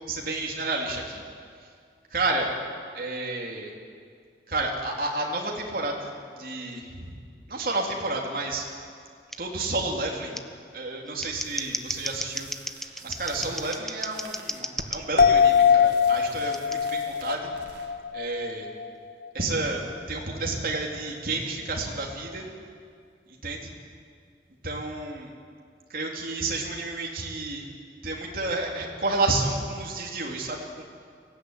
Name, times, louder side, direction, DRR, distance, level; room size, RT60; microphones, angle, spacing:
voice 1, 0.1-1.2 2.1-2.5 2.9-3.7 4.5-7.2 7.5-8.6 9.4-10.4 10.7-12.5 13.0-17.5 18.1-18.7 19.3-19.8 20.1-22.4 23.4-23.7 24.6-25.3 25.9-27.6 28.0-30.8, right 2 dB, 50° right, -1 dB, 3.5 m, -30 dB
Scissors, 9.3-9.4 10.3-10.4 11.1-15.0 16.5-16.8, left 1 dB, ahead, 0.7 m, -34 dB
sound 1, 11.3-19.1, right 2 dB, 90° right, 2.2 m, -46 dB
sound 2, 15.2-18.9 19.2-19.3, left 7 dB, 50° left, 0.6 m, -22 dB
23.5 x 16.0 x 9.9 m, 2.2 s
head